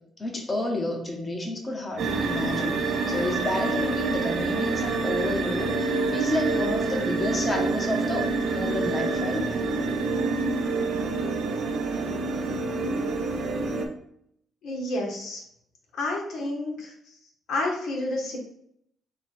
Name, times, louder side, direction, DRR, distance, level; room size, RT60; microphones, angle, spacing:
voice 1, 0.2-9.5, left 1 dB, 25° left, 1 dB, 1.2 m, -30 dB
sound 1, 2.0-13.9, right 3 dB, 70° right, 0.7 m, -27 dB
voice 2, 14.6-15.4 15.9-16.9 17.5-18.4, left 2 dB, 75° left, 0 dB, 1.3 m, -29 dB
3.9 x 2.4 x 4.5 m, 0.71 s
cardioid pair, 90°, 0 cm